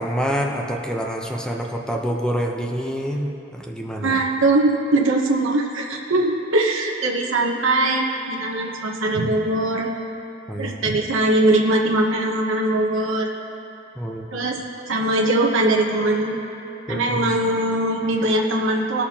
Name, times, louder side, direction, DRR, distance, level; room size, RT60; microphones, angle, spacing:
voice 1, 0.0-4.2 10.5-10.9 14.0-14.2 16.9-17.3, equal, 5° left, 1 dB, 0.7 m, -27 dB
voice 2, 4.0-9.9 10.6-13.3 14.3-14.6 14.9-16.4 16.9-19.0, right 2 dB, 85° right, 0 dB, 0.9 m, -21 dB
19.0 x 6.7 x 2.9 m, 2.9 s
head